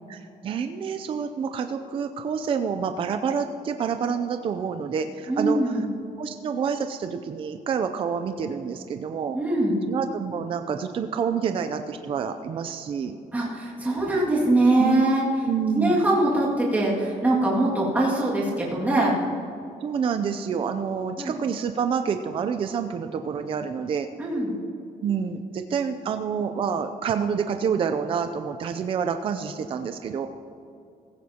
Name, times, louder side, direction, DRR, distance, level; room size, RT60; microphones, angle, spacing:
voice 1, 0.1-5.9 6.2-9.4 9.9-13.2 14.8-15.0 15.4-16.0 19.8-24.1 25.0-30.3, right 6 dB, 35° right, 7 dB, 0.5 m, -28 dB
voice 2, 5.3-5.9 9.3-9.8 13.3-15.2 15.7-19.2 21.2-21.3 24.2-24.5, right 1 dB, 10° right, -6 dB, 2.1 m, -22 dB
16.0 x 15.5 x 2.9 m, 2.6 s
cardioid pair, 175°, 15 cm